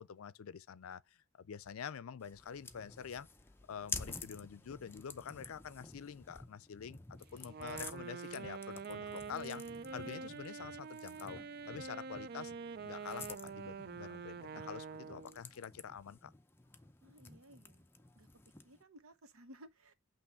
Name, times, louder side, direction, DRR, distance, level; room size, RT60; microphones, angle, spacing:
voice 1, 0.0-3.3 3.6-9.6 9.9-11.4 11.7-12.5 12.8-16.3, left 7 dB, 90° left, 0.4 m, -47 dB
sound 1, 2.2-18.8, left 4 dB, 10° left, 0.5 m, -51 dB
Wind instrument woodwind instrument, 7.4-15.4, right 5 dB, 45° right, 0.4 m, -46 dB
voice 2, 17.0-17.9 18.1-18.3 18.6-19.9, equal, 90° right, 1.0 m, -58 dB
8.6 x 3.1 x 5.7 m
head